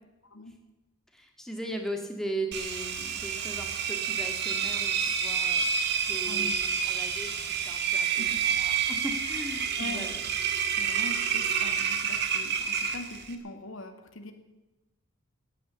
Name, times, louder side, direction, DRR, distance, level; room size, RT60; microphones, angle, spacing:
voice 1, 0.2-0.5 5.9-6.0 6.3-6.5 8.2-8.4 9.8-10.0 10.7-14.3, left 2 dB, 75° left, 6 dB, 2.0 m, -41 dB
voice 2, 1.1-5.7 6.1-10.2, right 1 dB, ahead, 3 dB, 1.8 m, -38 dB
Engine, 2.5-13.4, right 7 dB, 50° right, 1.6 m, -29 dB
15.0 x 9.4 x 9.9 m, 1.0 s
head